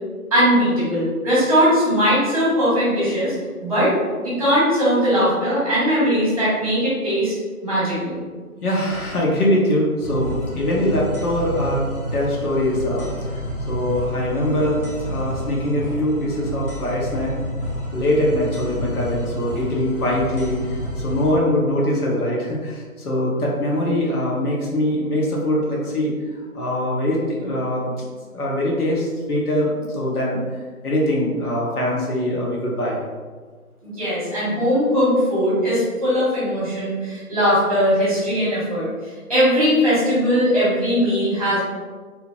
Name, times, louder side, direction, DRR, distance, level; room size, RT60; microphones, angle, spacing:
voice 1, 0.3-3.3 3.6-3.9 4.2-7.3 7.6-8.2 33.8-38.9 39.3-41.6, equal, 25° right, -10 dB, 1.1 m, -19 dB
voice 2, 8.6-11.8 12.1-13.4 13.7-17.3 17.9-28.0 28.3-30.4 30.8-33.0, left 1 dB, 80° left, -4 dB, 1.0 m, -22 dB
sound 1, 10.0-21.3, equal, 40° left, 0.6 m, -29 dB
2.8 x 2.6 x 2.5 m, 1.5 s
figure-of-eight pair, 170°, 44 cm